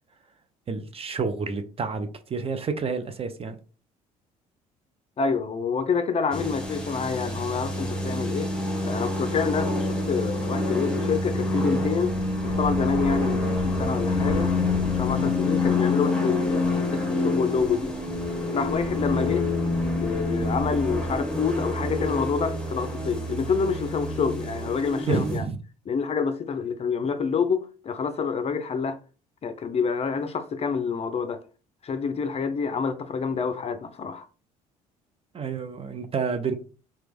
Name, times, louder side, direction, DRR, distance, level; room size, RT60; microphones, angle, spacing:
voice 1, 0.7-3.6 15.2-15.4 25.1-25.6 35.3-36.5, right 5 dB, 30° right, 0.6 m, -29 dB
voice 2, 5.2-8.5 8.8-12.1 12.4-17.9 18.5-19.4 19.9-25.5 25.9-29.0 29.4-31.4 31.8-34.3, left 5 dB, 35° left, 0.5 m, -27 dB
sound 1, 6.3-25.4, left 2 dB, 5° left, 1.2 m, -27 dB
3.0 x 2.3 x 3.4 m
hypercardioid pair, 60°, 18 cm